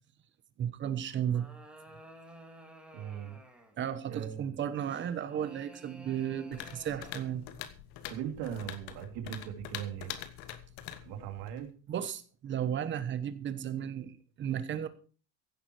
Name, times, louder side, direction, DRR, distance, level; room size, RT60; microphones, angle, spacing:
voice 1, 0.6-1.5 3.8-7.5 11.9-14.9, right 9 dB, 25° right, 12 dB, 1.0 m, -34 dB
sound 1, 1.0-3.9 4.9-7.5, right 1 dB, ahead, 2.1 m, -54 dB
voice 2, 2.9-3.4 4.1-4.5 8.1-10.1 11.0-11.7, right 10 dB, 55° right, 5 dB, 3.0 m, -39 dB
sound 2, 6.5-11.7, left 11 dB, 55° left, 1.6 m, -44 dB
16.0 x 11.0 x 4.6 m, 0.38 s
cardioid pair, 180°, 48 cm